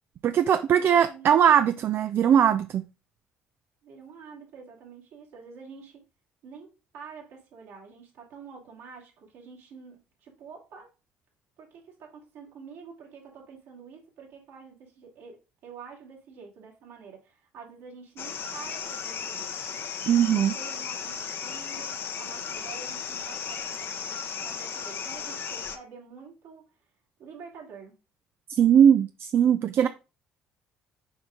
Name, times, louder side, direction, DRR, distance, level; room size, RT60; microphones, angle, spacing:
voice 1, 0.2-2.8 20.1-20.5 28.5-29.9, right 9 dB, 50° right, 0.4 m, -20 dB
voice 2, 0.8-1.3 1.7-1.9 3.8-6.0 6.4-10.9 11.6-19.6 20.3-26.9 27.2-28.0, right 5 dB, 70° right, 2.5 m, -47 dB
sound 1, 18.2-25.8, left 7 dB, 50° left, 0.9 m, -35 dB
6.2 x 4.9 x 3.6 m
hypercardioid pair, 55°, 5 cm